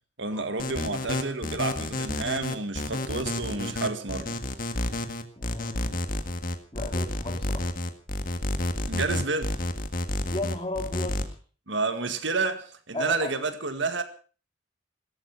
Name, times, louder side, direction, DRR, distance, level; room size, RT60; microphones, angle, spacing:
voice 1, 0.2-4.4 8.9-9.5 11.7-14.0, right 3 dB, 65° right, 1.9 m, -30 dB
sound 1, 0.6-11.2, left 1 dB, 45° left, 1.7 m, -30 dB
voice 2, 5.4-6.1 6.7-7.7 10.3-11.2 12.9-13.3, left 2 dB, 25° left, 3.1 m, -35 dB
17.5 x 14.0 x 5.9 m
head